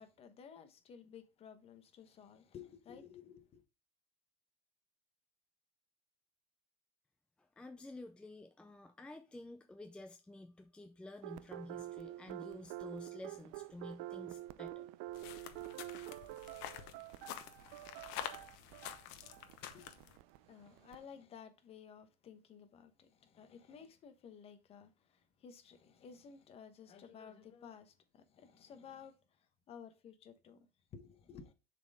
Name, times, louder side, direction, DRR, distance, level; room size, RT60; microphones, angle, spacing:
voice 1, 0.0-3.6 19.7-19.9 20.4-31.5, left 7 dB, 30° left, 1.0 m, -55 dB
voice 2, 7.4-14.9, left 2 dB, 5° left, 0.5 m, -51 dB
sound 1, 11.2-21.0, right 15 dB, 75° right, 0.5 m, -48 dB
sound 2, 15.1-20.2, left 11 dB, 65° left, 1.0 m, -48 dB
7.0 x 4.3 x 3.6 m
cardioid pair, 150°, 19 cm